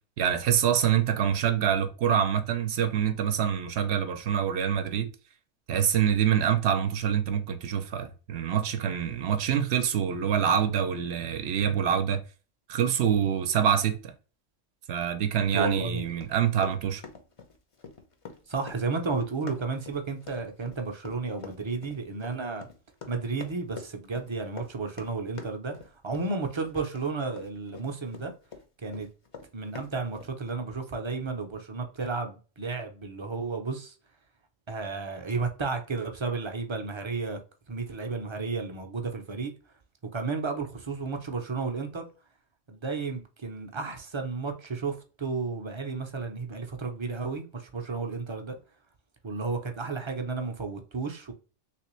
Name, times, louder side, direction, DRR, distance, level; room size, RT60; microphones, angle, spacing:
voice 1, 0.2-5.1 5.7-12.2 12.7-14.1 14.9-17.0, right 8 dB, 65° right, 0.8 m, -26 dB
voice 2, 15.5-16.1 18.5-22.7 23.1-28.3 28.8-29.1 29.5-34.0 34.7-37.4 37.7-39.5 40.1-42.0 42.7-48.6 49.2-51.3, right 4 dB, 35° right, 0.5 m, -32 dB
Run, 16.2-28.6 28.9-30.3, left 5 dB, 35° left, 0.6 m, -45 dB
3.3 x 3.3 x 3.0 m
omnidirectional pair, 1.3 m